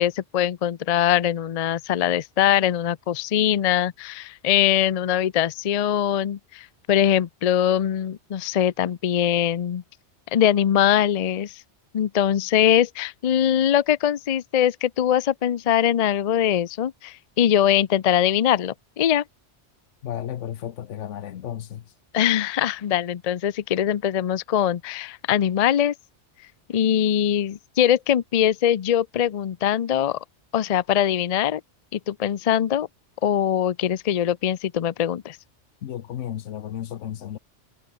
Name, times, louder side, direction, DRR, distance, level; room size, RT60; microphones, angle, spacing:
voice 1, 0.0-9.8 10.3-11.5 11.9-19.2 22.1-25.9 26.7-30.2 30.5-31.6 31.9-32.9 33.2-35.4, left 10 dB, 50° left, 0.5 m, -22 dB
voice 2, 20.0-21.8 35.8-37.4, left 10 dB, 80° left, 1.1 m, -33 dB
omnidirectional pair, 1.2 m